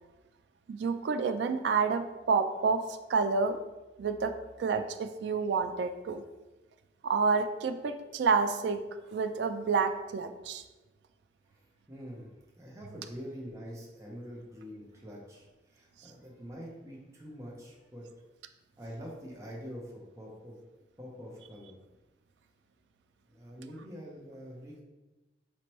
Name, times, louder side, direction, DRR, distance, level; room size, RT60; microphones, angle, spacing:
voice 1, 0.7-3.6 4.0-4.3 4.6-6.2 7.0-8.8 9.1-10.6, right 5 dB, 65° right, 8 dB, 0.3 m, -29 dB
voice 2, 11.4-18.1 18.8-20.6 21.0-21.8 23.3-24.8, equal, 15° right, -4 dB, 0.6 m, -45 dB
4.2 x 3.0 x 2.9 m, 1.1 s
head